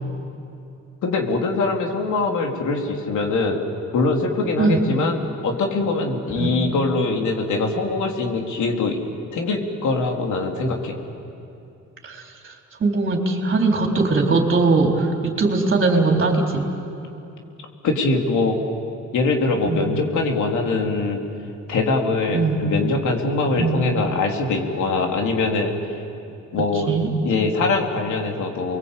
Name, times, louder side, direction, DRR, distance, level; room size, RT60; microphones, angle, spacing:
voice 1, 1.0-3.6 3.9-9.0 9.3-11.0 17.8-18.6 19.1-21.2 21.7-25.7 26.5-26.9 27.2-28.8, left 3 dB, 75° left, 1 dB, 3.6 m, -22 dB
voice 2, 12.8-16.7 19.6-19.8 22.3-22.6 23.6-23.8 26.9-27.1, right 3 dB, 40° right, 1 dB, 4.0 m, -20 dB
29.5 x 22.5 x 8.4 m, 2.7 s
cardioid pair, 90°, 30 cm